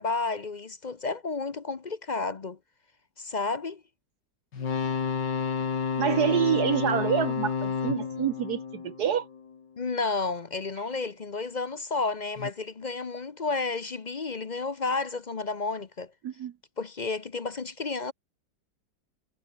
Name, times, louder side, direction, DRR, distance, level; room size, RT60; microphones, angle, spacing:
voice 1, 0.0-2.6 3.2-3.8 9.8-16.1 16.8-18.1, left 3 dB, 40° left, 0.6 m, -31 dB
sound 1, 4.5-9.6 12.4-12.5, left 6 dB, 75° left, 2.8 m, -30 dB
voice 2, 6.0-9.3 16.2-16.5, right 9 dB, 65° right, 1.4 m, -27 dB
omnidirectional pair, 2.0 m